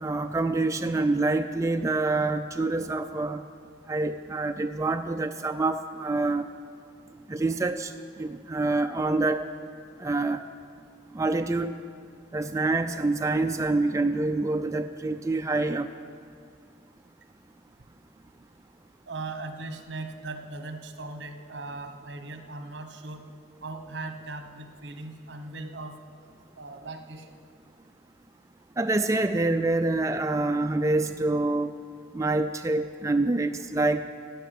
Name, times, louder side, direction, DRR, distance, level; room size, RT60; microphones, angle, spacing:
voice 1, 0.0-3.4 3.9-6.5 7.3-7.9 8.2-9.5 10.0-10.4 11.1-11.7 12.3-15.9 28.8-31.7 32.1-34.0, right 2 dB, 15° right, 7 dB, 0.3 m, -26 dB
voice 2, 19.1-23.2 23.6-26.0 26.6-27.4, right 3 dB, 75° right, 7 dB, 1.1 m, -39 dB
16.0 x 5.7 x 9.5 m, 2.2 s
head